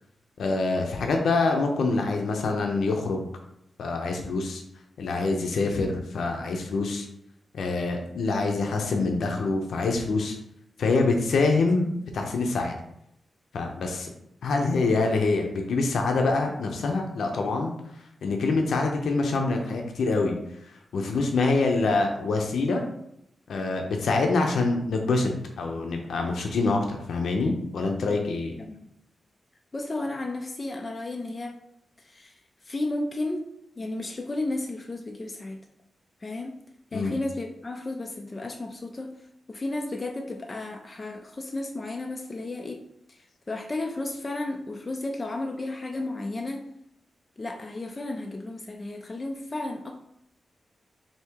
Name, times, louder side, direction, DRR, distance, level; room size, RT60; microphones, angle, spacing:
voice 1, 0.4-3.3 3.8-4.6 5.0-7.1 7.5-10.4 10.8-12.7 13.5-14.1 14.4-17.7 18.2-20.3 20.9-22.8 23.5-25.3 25.6-28.5 36.9-37.1, left 3 dB, 80° left, 3 dB, 0.6 m, -25 dB
voice 2, 29.7-31.6 32.0-33.4 33.8-35.6 36.2-36.6 36.9-39.2 39.5-42.8 43.1-46.7 47.4-49.9, left 2 dB, 25° left, 2 dB, 0.4 m, -33 dB
3.5 x 2.7 x 4.5 m, 0.76 s
wide cardioid pair, 155°, 0 cm